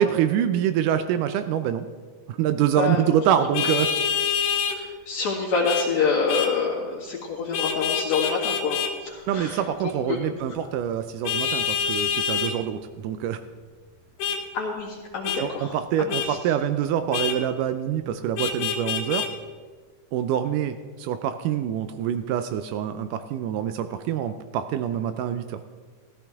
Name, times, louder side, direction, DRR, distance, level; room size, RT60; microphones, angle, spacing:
voice 1, 0.0-1.9 2.3-3.9 9.3-13.4 15.4-19.3 20.1-25.6, right 9 dB, 80° right, 9 dB, 2.1 m, -25 dB
Vehicle horn car horn honking, 3.5-4.8 5.6-5.9 6.3-6.5 7.5-8.9 11.2-12.5 14.2-14.4 15.2-15.4 16.1-16.3 17.1-17.4 18.4-19.3, left 7 dB, 85° left, 2.8 m, -26 dB
voice 2, 4.7-10.2 14.5-16.4, left 5 dB, 60° left, -5 dB, 3.0 m, -27 dB
15.0 x 14.5 x 3.5 m, 1.5 s
omnidirectional pair, 3.8 m